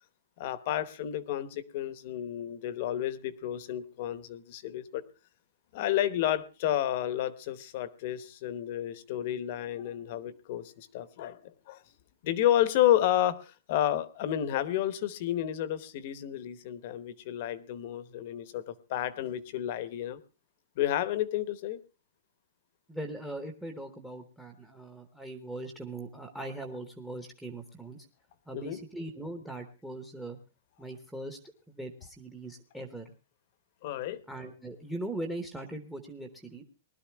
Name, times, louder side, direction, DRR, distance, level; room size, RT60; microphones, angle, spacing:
voice 1, 0.4-5.0 5.7-11.8 12.2-20.2 20.8-21.8 28.5-28.8 33.8-34.2, left 12 dB, 35° left, 15 dB, 0.9 m, -31 dB
voice 2, 22.9-28.0 28.5-30.4 30.8-31.4 31.7-33.1 34.3-36.6, right 1 dB, ahead, 7 dB, 0.9 m, -40 dB
20.0 x 12.5 x 3.4 m, 0.32 s
hypercardioid pair, 180°, 0 cm